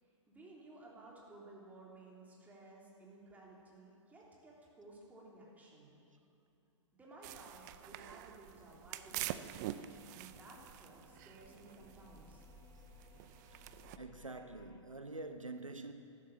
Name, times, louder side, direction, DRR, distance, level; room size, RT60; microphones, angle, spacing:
voice 1, 0.0-6.0 6.9-12.5, right 2 dB, 10° right, 3.5 m, -56 dB
sound 1, 7.2-14.0, right 13 dB, 35° right, 0.6 m, -47 dB
sound 2, 9.1-14.8, left 5 dB, 20° left, 1.0 m, -62 dB
voice 2, 14.0-15.9, right 2 dB, 90° right, 0.9 m, -46 dB
14.0 x 12.0 x 7.5 m
figure-of-eight pair, 115°, 16 cm